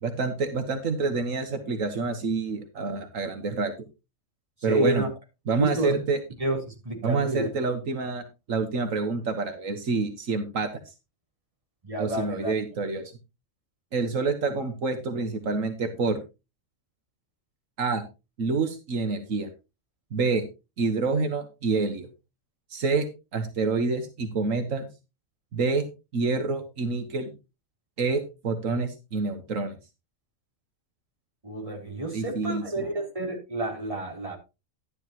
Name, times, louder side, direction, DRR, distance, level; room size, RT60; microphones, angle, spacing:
voice 1, 0.0-3.7 4.6-5.1 5.5-6.2 7.0-10.7 12.0-13.1 13.9-16.2 17.8-18.0 18.4-19.5 20.1-20.4 20.8-22.1 22.7-23.1 23.3-24.9 25.5-25.8 26.1-27.3 28.0-29.7 32.1-32.6, right 4 dB, 80° right, 7 dB, 1.7 m, -27 dB
voice 2, 4.7-5.1 5.6-6.0 6.4-6.6 6.8-7.5 11.8-12.5 31.4-34.4, right 1 dB, 25° right, -1 dB, 3.8 m, -29 dB
11.5 x 10.5 x 2.9 m, 0.27 s
omnidirectional pair, 1.4 m